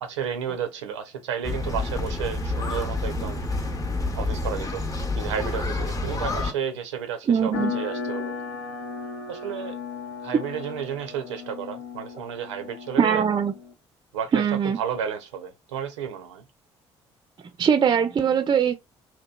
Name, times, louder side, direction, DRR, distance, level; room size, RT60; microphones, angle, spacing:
voice 1, 0.0-3.4 4.2-4.8 5.2-8.3 9.3-9.8 10.2-13.2 14.1-16.4, right 8 dB, 85° right, 0.5 m, -32 dB
sound 1, 1.4-6.5, left 2 dB, 20° left, 0.8 m, -28 dB
voice 2, 7.3-7.7 13.0-13.5 14.3-14.8 17.6-18.7, right 7 dB, 30° right, 0.4 m, -21 dB
sound 2, 7.5-13.7, left 5 dB, 80° left, 0.7 m, -35 dB
2.8 x 2.2 x 2.2 m
hypercardioid pair, 50°, 15 cm